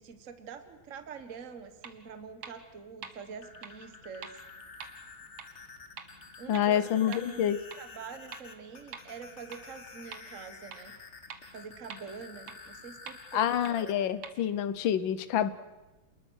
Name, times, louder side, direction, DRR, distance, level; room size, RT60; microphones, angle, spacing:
voice 1, 0.0-4.3 6.4-10.9 11.5-14.0, right 6 dB, 40° right, 8 dB, 1.6 m, -45 dB
sound 1, 1.8-1.9 2.4-2.5 3.0-3.1 3.6-3.7 4.2-4.3 4.8-4.9 5.4-5.5 6.0-6.1 6.5-6.6 7.1-7.2 7.7-7.8 8.3-8.4 8.9-9.0 9.5-9.6 10.1-10.2 10.7-10.8 11.3-11.4 11.9-12.0 12.5-12.6 13.1-13.2 13.6-13.7 14.2-14.3, right 6 dB, 70° right, 2.3 m, -43 dB
sound 2, 3.3-13.9, left 4 dB, 35° left, 1.7 m, -50 dB
voice 2, 6.5-7.6 13.3-15.5, left 10 dB, 70° left, 14 dB, 1.6 m, -27 dB
28.5 x 20.5 x 6.4 m, 1.1 s
omnidirectional pair, 2.3 m